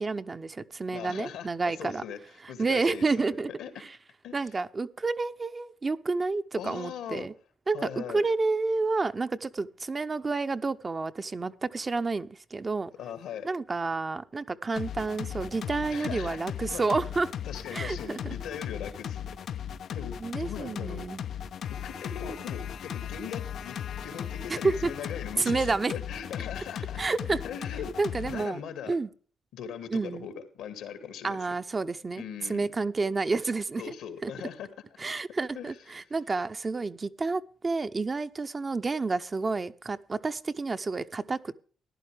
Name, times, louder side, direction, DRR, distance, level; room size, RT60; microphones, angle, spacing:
voice 1, 0.0-2.0 2.4-3.5 3.8-3.9 4.3-7.3 7.7-12.9 13.4-17.3 17.7-18.4 20.2-21.2 24.5-24.9 25.4-25.9 27.0-27.4 28.0-28.6 28.9-29.1 29.9-30.3 31.2-33.9 34.2-34.3 35.0-41.6, right 3 dB, 30° right, 0.6 m, -30 dB
voice 2, 0.9-1.5 1.8-2.2 2.5-3.7 4.2-4.3 6.6-7.3 7.7-8.2 13.0-13.5 15.9-16.4 16.7-16.8 17.5-19.4 19.9-21.0 21.8-27.0 27.3-27.9 28.3-28.9 29.5-31.4 32.2-32.7 33.8-34.7 35.5-35.7, left 8 dB, 85° left, 2.1 m, -40 dB
sound 1, 14.8-28.5, left 9 dB, 65° left, 0.4 m, -37 dB
15.0 x 11.0 x 3.4 m
cardioid pair, 90°, 0 cm